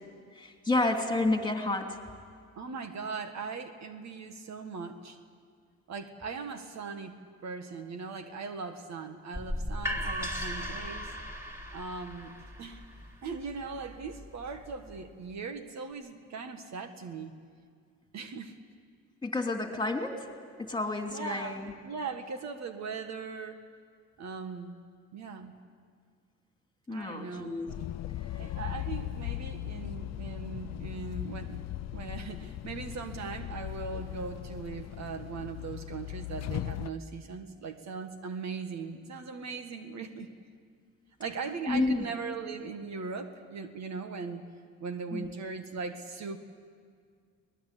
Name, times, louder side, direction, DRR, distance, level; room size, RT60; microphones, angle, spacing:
voice 1, 0.3-2.0 19.2-20.3 20.6-21.7 26.9-27.7 41.7-42.1 45.1-45.3, left 2 dB, 15° left, 4 dB, 3.0 m, -30 dB
voice 2, 2.6-5.2 5.9-11.1 11.7-12.8 13.2-17.3 18.1-18.6 21.1-23.6 24.2-24.8 25.1-25.5 26.9-27.6 28.4-31.6 31.9-40.3 41.2-44.4 44.8-46.4, right 5 dB, 65° right, 7 dB, 1.8 m, -39 dB
sound 1, 9.3-15.1, equal, 10° right, 3.9 m, -38 dB
sound 2, 27.7-36.9, left 14 dB, 60° left, 0.6 m, -38 dB
23.0 x 19.5 x 8.5 m, 2.1 s
cardioid pair, 90°, 30 cm